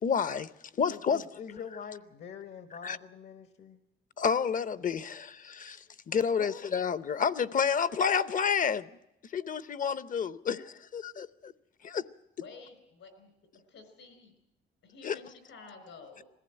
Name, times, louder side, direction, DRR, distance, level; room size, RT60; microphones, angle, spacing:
voice 1, 0.0-0.5 0.8-1.2 2.8-3.0 4.2-8.9 9.3-11.5 11.8-12.0 15.0-15.2, left 6 dB, 40° left, 0.8 m, -29 dB
voice 2, 0.9-3.8 6.3-6.6, left 7 dB, 60° left, 1.2 m, -44 dB
voice 3, 12.4-13.3 13.7-14.3 14.8-16.3, left 4 dB, 80° left, 4.6 m, -50 dB
20.5 x 15.0 x 8.9 m
cardioid pair, 90°, 20 cm